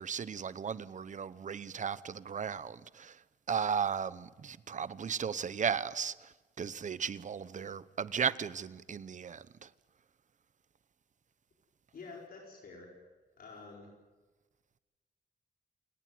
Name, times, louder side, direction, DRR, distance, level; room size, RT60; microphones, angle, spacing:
voice 1, 0.0-3.2 3.5-9.7, right 7 dB, 45° right, 0.9 m, -36 dB
voice 2, 11.9-12.9 13.4-13.9, left 4 dB, 60° left, 4.8 m, -49 dB
28.5 x 19.0 x 9.4 m
wide cardioid pair, 155°, 17 cm